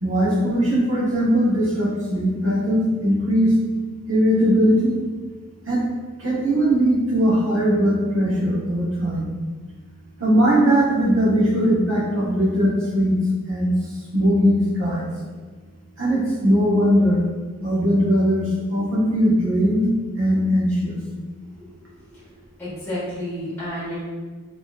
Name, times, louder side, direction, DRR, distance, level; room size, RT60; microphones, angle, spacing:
voice 1, 0.0-3.5 4.1-5.0 5.7-5.8 6.2-9.2 10.2-13.2 13.5-13.7 14.1-15.1 16.0-17.2 17.6-19.8 20.2-21.0, equal, 65° right, -6 dB, 1.1 m, -19 dB
voice 2, 22.6-24.0, left 1 dB, 10° left, -11 dB, 1.4 m, -30 dB
4.3 x 2.9 x 2.3 m, 1.5 s
head